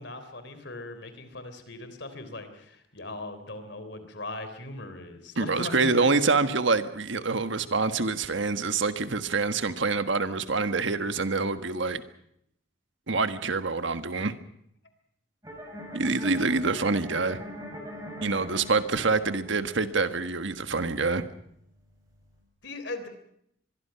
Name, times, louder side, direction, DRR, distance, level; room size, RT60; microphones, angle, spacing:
voice 1, 0.0-6.1 22.6-23.1, left 2 dB, 60° left, 10 dB, 3.6 m, -39 dB
voice 2, 5.4-12.0 13.1-14.3 15.9-17.4 18.2-21.3, right 4 dB, 70° right, 10 dB, 1.4 m, -26 dB
sound 1, 15.4-22.4, equal, 15° right, 6.6 m, -43 dB
24.5 x 22.5 x 5.8 m, 0.72 s
head